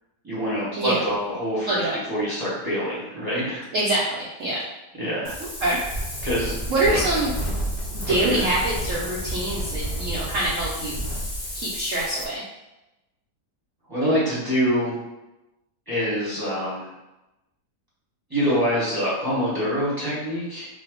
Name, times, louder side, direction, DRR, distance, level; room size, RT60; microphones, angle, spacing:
voice 1, 0.2-3.6 5.0-5.3 6.2-6.6 6.8-7.0 8.1-8.4 13.9-14.9 15.9-16.9 18.3-20.7, equal, 15° right, -10 dB, 0.9 m, -25 dB
voice 2, 1.7-2.0 3.7-4.6 5.4-5.8 6.7-7.4 7.9-11.0 11.5-12.4, right 1 dB, 70° right, -6 dB, 0.8 m, -25 dB
Wind, 5.2-12.3, equal, 75° left, 0.4 m, -31 dB
2.7 x 2.2 x 3.5 m, 0.97 s
omnidirectional pair, 1.8 m